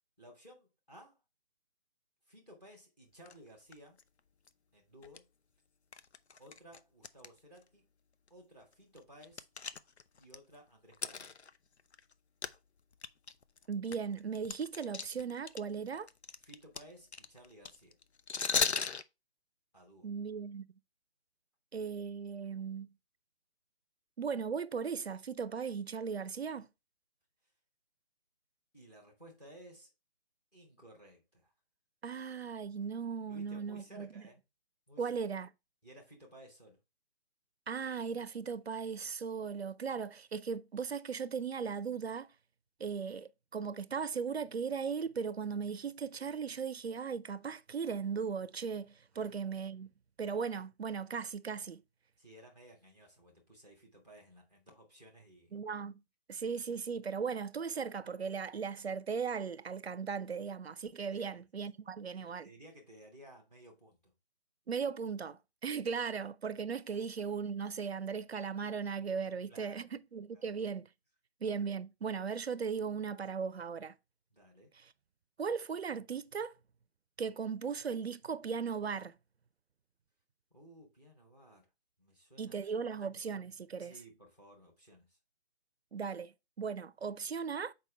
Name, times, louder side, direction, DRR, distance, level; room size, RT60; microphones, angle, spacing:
voice 1, 0.2-1.2 2.3-4.0 4.7-5.3 6.4-7.9 8.3-9.5 10.2-11.4 16.4-18.0 19.7-20.1 28.7-29.9 30.5-31.5 33.3-34.4 34.9-35.1 35.8-36.8 49.1-49.3 52.2-55.6 61.1-61.6 62.2-64.1 69.5-69.9 70.3-70.6 74.3-74.7 80.5-81.7 82.0-83.0 83.8-85.2, equal, 5° left, 0.7 m, -57 dB
sound 1, 3.3-3.4 3.7-4.0 4.5-4.6 5.0-5.2 5.9-7.3 7.6-7.7 8.3-8.4 8.7-10.4 10.9-12.1 12.4-12.6 12.9-15.6 15.9-19.0, left 5 dB, 85° left, 0.6 m, -36 dB
voice 2, 13.7-16.1 20.0-20.7 21.7-22.9 24.2-26.7 32.0-34.1 35.0-35.5 37.7-42.3 42.8-49.9 50.2-51.8 55.5-56.0 56.3-62.5 64.7-70.9 71.4-73.9 75.4-76.5 77.2-79.1 82.4-83.9 85.9-87.7, right 6 dB, 70° right, 0.5 m, -37 dB
6.6 x 4.6 x 3.3 m
figure-of-eight pair, 145°, 32 cm